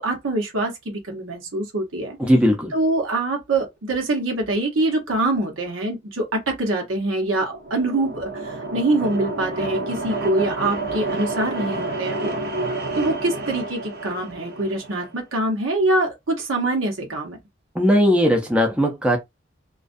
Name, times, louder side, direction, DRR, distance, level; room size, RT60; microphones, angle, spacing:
voice 1, 0.0-2.2 2.7-12.3 12.9-17.4, right 2 dB, 80° right, 0.9 m, -24 dB
voice 2, 2.2-2.7 17.7-19.2, equal, 5° right, 0.5 m, -18 dB
sound 1, 7.2-15.1, right 2 dB, 50° right, 0.6 m, -29 dB
2.3 x 2.3 x 2.5 m
head